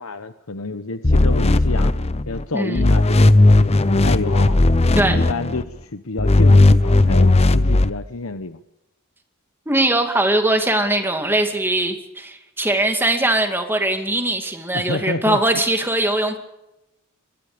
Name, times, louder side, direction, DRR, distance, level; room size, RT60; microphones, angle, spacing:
voice 1, 0.0-1.9 2.3-4.6 5.0-8.6 14.7-15.6, left 3 dB, 70° left, 11 dB, 1.0 m, -29 dB
sound 1, 1.0-2.4 2.8-5.6 6.2-7.9, left 2 dB, 30° left, 0.7 m, -15 dB
voice 2, 2.5-2.8 4.9-5.2 9.7-16.4, right 1 dB, 10° right, 5 dB, 2.5 m, -21 dB
26.0 x 22.5 x 5.2 m, 0.91 s
head